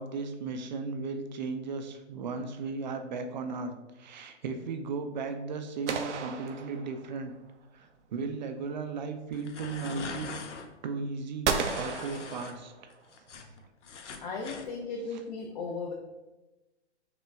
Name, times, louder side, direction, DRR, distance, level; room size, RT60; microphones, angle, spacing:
voice 1, 0.0-7.3 7.7-10.3 10.8-12.7 13.4-13.5, right 4 dB, 40° right, 7 dB, 0.4 m, -36 dB
sound 1, 5.9-7.3 11.4-13.0, right 5 dB, 80° right, 0.7 m, -33 dB
sound 2, 9.3-10.7 11.5-12.5 12.9-14.7, left 5 dB, 90° left, 0.7 m, -42 dB
voice 2, 14.2-15.9, left 4 dB, 45° left, 0 dB, 0.6 m, -36 dB
5.9 x 2.1 x 3.4 m, 1.1 s
hypercardioid pair, 140°, 35 cm